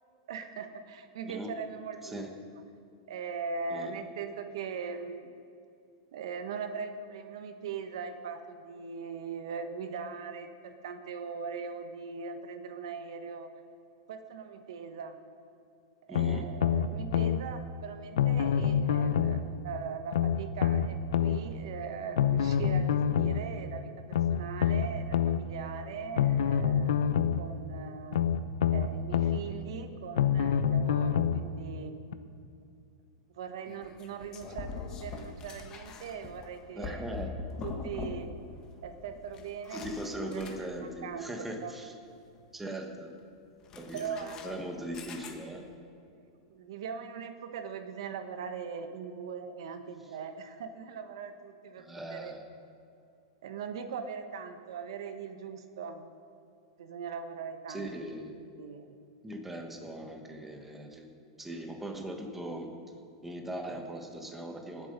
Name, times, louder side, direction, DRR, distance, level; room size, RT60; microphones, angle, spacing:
voice 1, 0.3-2.2 3.1-5.3 6.1-13.5 14.1-15.2 16.1-23.9 24.3-27.1 27.4-28.2 28.7-31.9 33.3-37.1 37.6-38.3 38.8-41.3 41.6-41.8 43.9-44.4 46.5-52.3 53.4-56.1 56.8-57.9 58.6-59.0, right 6 dB, 70° right, 8 dB, 1.1 m, -40 dB
voice 2, 16.1-16.5 36.8-37.3 39.7-41.9 42.5-43.1 43.7-45.6 51.8-52.4 57.7-58.3 59.2-61.1 61.4-62.7 63.2-64.9, right 1 dB, 5° right, 3 dB, 1.2 m, -39 dB
sound 1, 16.2-17.4 18.2-19.4 20.1-21.4 22.2-23.4 24.1-25.4 26.2-27.4 28.1-29.4 30.2-31.4 32.1-32.2, left 8 dB, 90° left, 0.6 m, -26 dB
sound 2, 33.6-38.5 38.7-41.0 43.6-45.7, left 4 dB, 25° left, 1.2 m, -42 dB
19.0 x 7.8 x 5.3 m, 2.5 s
supercardioid pair, 155°, 3 cm